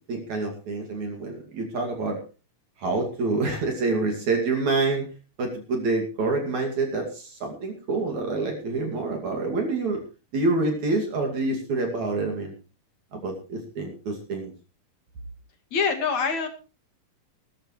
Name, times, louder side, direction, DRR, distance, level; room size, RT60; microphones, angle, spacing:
voice 1, 0.1-2.2 2.8-5.1 5.4-10.0 10.3-12.5 13.1-14.5, right 3 dB, 55° right, 1 dB, 3.7 m, -27 dB
voice 2, 15.7-16.5, left 5 dB, 55° left, 4 dB, 3.5 m, -24 dB
19.0 x 13.0 x 3.2 m, 0.33 s
omnidirectional pair, 4.1 m